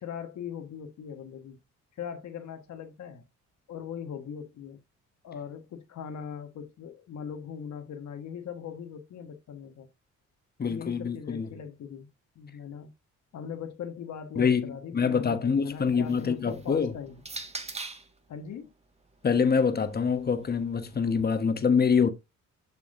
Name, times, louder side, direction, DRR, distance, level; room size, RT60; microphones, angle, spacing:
voice 1, 0.0-1.6 2.0-3.2 3.7-4.8 5.2-9.9 10.6-12.1 12.3-12.9 13.3-17.2 18.3-18.7, left 7 dB, 65° left, 1.5 m, -40 dB
voice 2, 10.6-11.5 14.4-16.9 19.2-22.1, left 6 dB, 30° left, 1.2 m, -25 dB
Can open, 15.7-18.2 19.1-21.2, right 3 dB, 20° right, 1.4 m, -44 dB
7.3 x 6.0 x 2.6 m
cardioid pair, 90°, 30 cm